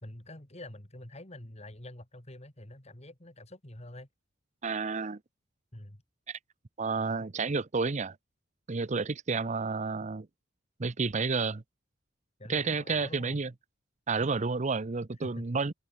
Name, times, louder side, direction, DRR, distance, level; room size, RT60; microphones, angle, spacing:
voice 1, 0.0-4.1 5.7-6.0 12.4-13.4 15.2-15.5, left 1 dB, 35° left, 2.9 m, -46 dB
voice 2, 4.6-5.2 6.3-6.4 6.8-8.2 8.7-10.3 10.8-11.6 12.5-13.5 14.1-15.7, right 4 dB, 35° right, 0.7 m, -30 dB
open air
head